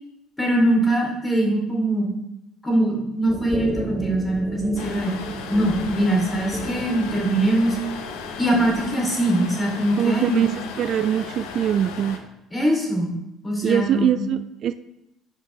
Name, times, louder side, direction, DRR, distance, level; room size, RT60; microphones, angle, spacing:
voice 1, 0.4-2.1 2.6-5.1 5.5-7.8 8.4-10.5 12.5-13.1 13.4-14.2, right 1 dB, 15° left, -1 dB, 2.9 m, -22 dB
sound 1, 3.3-8.9, right 1 dB, 10° right, 1.0 m, -35 dB
sound 2, 4.8-12.2, left 6 dB, 75° left, 0.8 m, -36 dB
voice 2, 10.0-10.5 10.8-12.2 13.6-14.7, right 10 dB, 55° right, 12 dB, 0.3 m, -22 dB
6.6 x 5.1 x 4.5 m, 0.89 s
hypercardioid pair, 60°, 0 cm